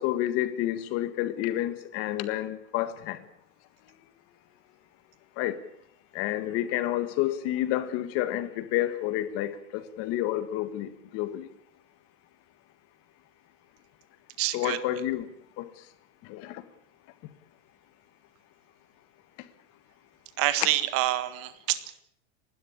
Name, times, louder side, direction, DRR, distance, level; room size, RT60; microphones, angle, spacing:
voice 1, 0.0-3.2 5.4-5.6 6.1-11.5 14.5-15.3 15.6-15.7 16.3-16.6, left 13 dB, 40° left, 12 dB, 1.7 m, -29 dB
voice 2, 14.4-14.8 20.4-21.9, right 14 dB, 35° right, 13 dB, 1.7 m, -27 dB
30.0 x 12.5 x 8.7 m, 0.70 s
supercardioid pair, 175°, 38 cm